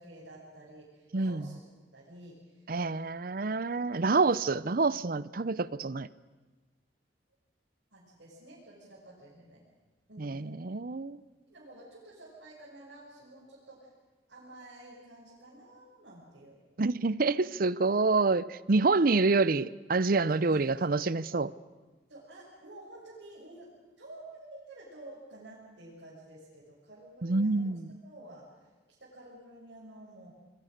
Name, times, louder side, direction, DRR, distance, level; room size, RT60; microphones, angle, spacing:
voice 1, 0.0-1.6 1.9-2.6 4.0-4.5 5.4-5.6 7.9-9.6 10.1-10.6 11.5-13.9 14.3-16.6 20.4-20.6 21.3-21.4 22.1-23.7 24.0-27.7 28.0-28.5 29.0-30.3, right 1 dB, 90° right, 7.2 m, -51 dB
voice 2, 1.1-1.5 2.7-6.1 10.2-11.2 16.8-21.5 27.2-28.0, right 3 dB, 55° right, 0.7 m, -27 dB
26.5 x 23.0 x 6.7 m
head